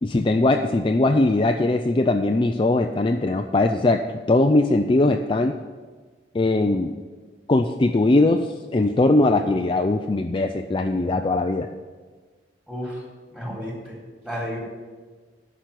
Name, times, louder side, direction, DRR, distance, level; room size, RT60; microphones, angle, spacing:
voice 1, 0.0-5.5 6.3-6.9 7.5-11.7, left 2 dB, 30° left, 5 dB, 0.4 m, -20 dB
voice 2, 12.7-13.0 13.3-13.9 14.2-14.6, equal, 5° right, -4 dB, 3.7 m, -31 dB
10.5 x 6.2 x 8.2 m, 1.5 s
head